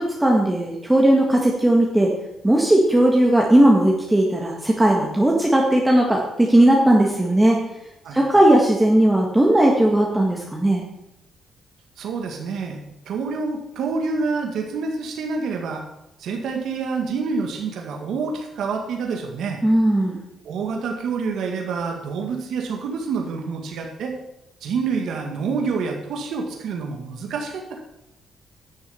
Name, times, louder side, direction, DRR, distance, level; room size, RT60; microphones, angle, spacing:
voice 1, 0.0-2.1 2.4-7.6 8.1-10.8 19.6-20.2, right 1 dB, 10° right, -1 dB, 1.6 m, -17 dB
voice 2, 12.0-12.8 13.1-15.8 16.2-19.6 20.4-24.1 24.6-27.8, right 4 dB, 75° right, 2 dB, 1.8 m, -27 dB
10.5 x 6.7 x 5.6 m, 0.88 s
cardioid pair, 90°, 0 cm